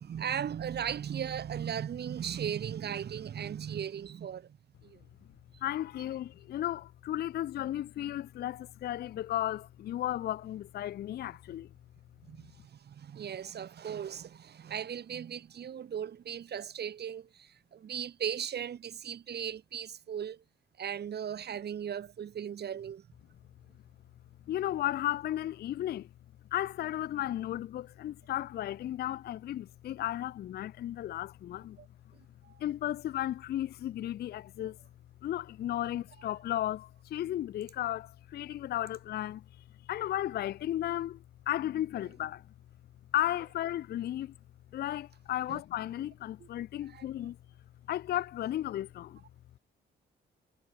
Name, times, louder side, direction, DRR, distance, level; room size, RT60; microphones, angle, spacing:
voice 1, 0.0-4.6 4.8-5.0 12.3-20.4 20.8-23.1 31.8-31.9 32.4-32.5 45.5-45.6 46.4-46.5 46.9-47.1, right 8 dB, 55° right, 2.9 m, -37 dB
voice 2, 5.6-11.7 24.5-26.1 26.5-31.8 32.6-34.8 35.2-39.4 39.9-42.4 43.1-44.3 44.7-47.4 47.9-49.2, left 13 dB, 55° left, 0.4 m, -34 dB
cardioid pair, 90°, 20 cm